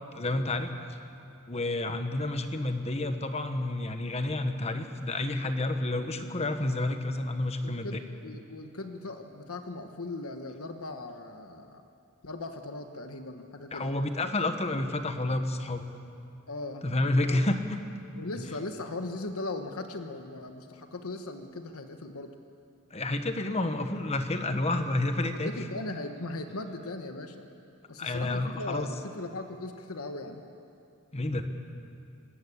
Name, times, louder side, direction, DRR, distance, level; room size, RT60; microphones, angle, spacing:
voice 1, 0.1-0.7 1.5-8.0 13.7-15.9 16.8-17.8 22.9-25.5 28.0-28.9 31.1-31.4, left 2 dB, 30° left, 7 dB, 1.2 m, -29 dB
voice 2, 7.6-11.8 12.2-13.9 16.5-17.4 18.1-22.3 25.3-27.5 27.9-30.4, left 2 dB, 85° left, 6 dB, 1.2 m, -39 dB
26.0 x 14.0 x 8.5 m, 2.6 s
head